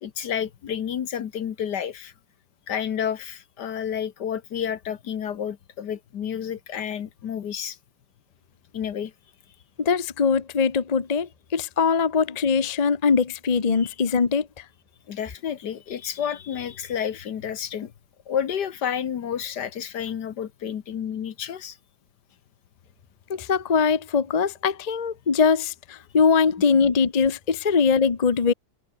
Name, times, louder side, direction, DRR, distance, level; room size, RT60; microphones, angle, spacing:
voice 1, 0.0-2.1 2.7-7.8 8.7-9.1 13.8-14.0 15.1-17.9 18.3-21.8, left 8 dB, 65° left, 1.7 m, -30 dB
voice 2, 9.8-14.5 23.3-28.5, left 5 dB, 30° left, 0.8 m, -22 dB
omnidirectional pair, 2.0 m